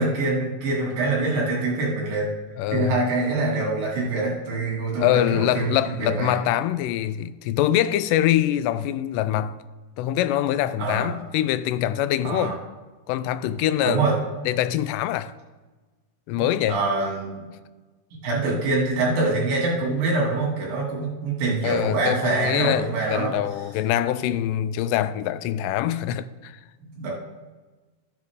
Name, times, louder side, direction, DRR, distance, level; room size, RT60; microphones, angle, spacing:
voice 1, 0.0-2.3 2.7-6.4 10.8-11.1 12.2-12.6 13.8-14.2 16.3-17.5 18.1-23.4 26.8-27.1, right 3 dB, 85° right, 4.1 m, -25 dB
voice 2, 2.6-3.1 5.0-9.6 10.0-12.6 13.1-14.0 14.5-15.3 16.3-16.8 18.5-18.6 21.6-26.6, left 12 dB, 85° left, 2.1 m, -24 dB
13.5 x 8.0 x 3.6 m
omnidirectional pair, 3.8 m